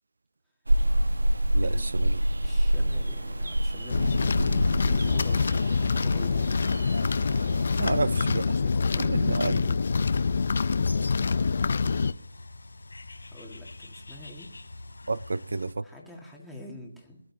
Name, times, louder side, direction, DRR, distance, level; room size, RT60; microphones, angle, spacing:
sound 1, 0.7-8.0, right 1 dB, 90° right, 1.4 m, -27 dB
voice 1, 1.5-2.2 7.8-8.6 9.0-9.7 15.1-15.8, right 3 dB, 70° right, 0.4 m, -30 dB
voice 2, 2.4-6.6 7.6-9.8 13.3-14.5 15.8-17.2, left 1 dB, ahead, 1.9 m, -46 dB
sound 2, 3.9-12.1, left 4 dB, 50° left, 0.6 m, -25 dB
Bird, 10.1-15.7, left 2 dB, 85° left, 3.1 m, -45 dB
23.5 x 11.5 x 2.8 m
figure-of-eight pair, 165°, 0 cm